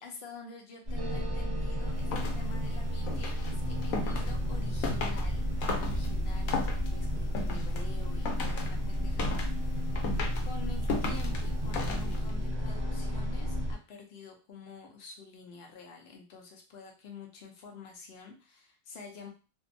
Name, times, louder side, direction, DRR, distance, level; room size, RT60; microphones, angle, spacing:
voice 1, 0.0-9.5 9.8-10.1 10.4-19.3, left 4 dB, 60° left, 2 dB, 0.7 m, -48 dB
sound 1, 0.8-13.7, equal, 35° right, 0.9 m, -32 dB
sound 2, 1.0-10.1 10.4-10.5 10.7-11.3, right 3 dB, 65° right, 0.9 m, -50 dB
sound 3, 1.9-12.4, left 3 dB, 80° left, 1.0 m, -37 dB
2.6 x 2.2 x 2.5 m, 0.35 s
omnidirectional pair, 1.5 m